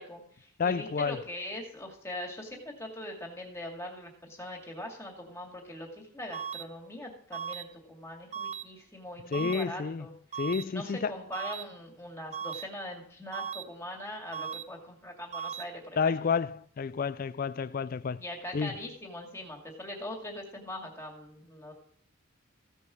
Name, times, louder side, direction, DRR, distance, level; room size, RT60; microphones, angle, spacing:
voice 1, 0.0-10.1 10.7-16.2 18.2-21.7, left 1 dB, 15° left, 2.2 m, -41 dB
voice 2, 0.6-1.2 9.3-10.1 10.4-11.1 16.0-18.2 18.5-18.7, left 5 dB, 45° left, 0.4 m, -30 dB
sound 1, 6.3-6.6 7.3-7.6 8.3-8.6 9.3-9.6 10.3-10.6 11.3-11.6 12.3-12.6 13.3-13.6 14.3-14.6 15.3-15.6, right 8 dB, 35° right, 0.7 m, -37 dB
15.0 x 5.4 x 6.2 m
head